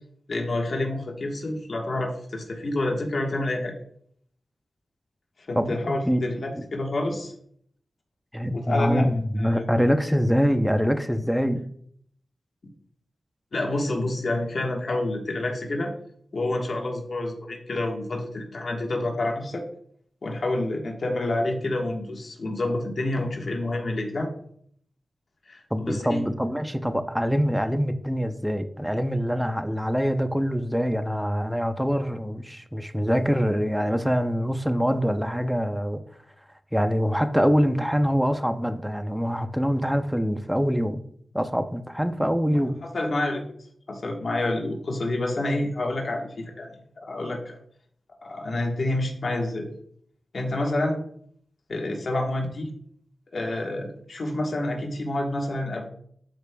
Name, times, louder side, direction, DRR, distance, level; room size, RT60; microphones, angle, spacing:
voice 1, 0.3-3.7 5.5-7.3 8.5-9.0 9.4-9.6 13.5-15.9 16.3-19.6 20.2-24.3 25.5-26.2 42.9-43.4 43.9-47.6 48.2-49.7 50.3-51.0 51.7-52.7 53.3-55.9, left 2 dB, 60° left, 1.4 m, -28 dB
voice 2, 5.6-6.2 6.5-6.6 8.3-11.6 25.7-36.0 36.7-41.0 41.3-42.8, equal, ahead, 0.7 m, -24 dB
12.0 x 4.9 x 2.3 m
cardioid pair, 65°, 0 cm